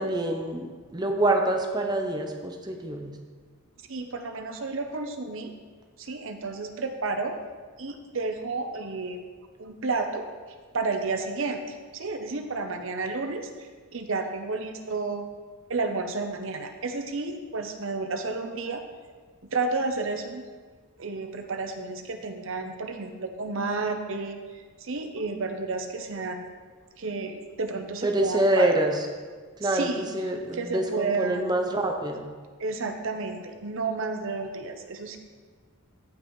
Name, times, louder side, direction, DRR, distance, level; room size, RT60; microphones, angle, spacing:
voice 1, 0.0-3.1 28.0-29.1 29.6-32.3, right 1 dB, 20° right, 3 dB, 0.7 m, -26 dB
voice 2, 3.9-5.5 6.0-7.4 7.8-9.2 9.6-10.3 10.7-15.3 15.7-18.8 19.5-20.4 21.0-26.4 27.0-28.7 29.6-30.1 30.5-31.6 32.6-35.2, right 3 dB, 60° right, 6 dB, 0.8 m, -31 dB
14.5 x 5.5 x 3.2 m, 1.5 s
head